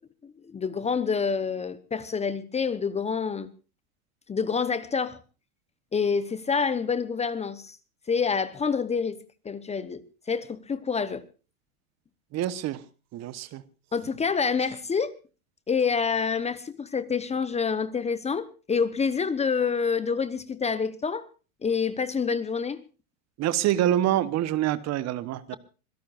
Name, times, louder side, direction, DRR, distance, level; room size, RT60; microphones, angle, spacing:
voice 1, 0.5-3.5 4.3-5.2 5.9-7.8 8.1-9.2 9.4-11.2 13.9-15.1 15.7-21.3 21.6-22.8, left 5 dB, 15° left, 0.9 m, -27 dB
voice 2, 12.3-12.8 13.1-13.6 23.4-25.6, right 12 dB, 35° right, 1.1 m, -26 dB
25.0 x 17.0 x 2.5 m
hypercardioid pair, 110°, 44 cm